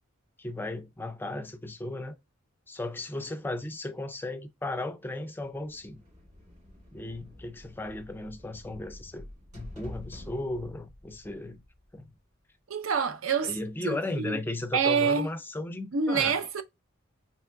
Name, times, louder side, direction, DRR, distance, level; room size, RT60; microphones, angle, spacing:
voice 1, 0.4-2.2 2.7-6.0 6.9-9.3 9.5-11.6 11.9-12.1 13.4-16.4, left 2 dB, 10° left, 0.4 m, -35 dB
sound 1, 5.5-12.2, left 1 dB, 35° right, 1.9 m, -48 dB
voice 2, 12.7-13.6 13.8-14.4 14.7-15.3 15.9-16.6, right 5 dB, 75° right, 0.6 m, -26 dB
3.5 x 3.0 x 3.4 m
head